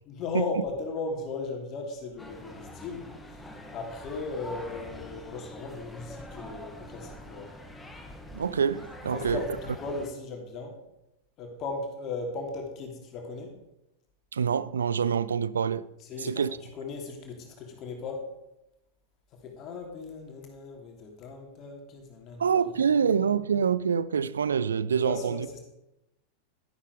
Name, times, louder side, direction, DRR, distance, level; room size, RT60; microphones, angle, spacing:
voice 1, 0.1-3.0 3.7-7.5 9.1-10.7 11.4-13.5 16.1-16.3 16.7-18.2 19.4-22.5 25.0-25.6, left 3 dB, 35° left, 2.9 m, -37 dB
sound 1, 2.2-10.1, left 1 dB, 10° left, 2.0 m, -44 dB
voice 2, 8.3-9.4 14.3-15.9 16.2-16.6 22.4-25.5, right 7 dB, 70° right, 0.5 m, -26 dB
12.5 x 11.5 x 4.8 m
figure-of-eight pair, 90°, 0 cm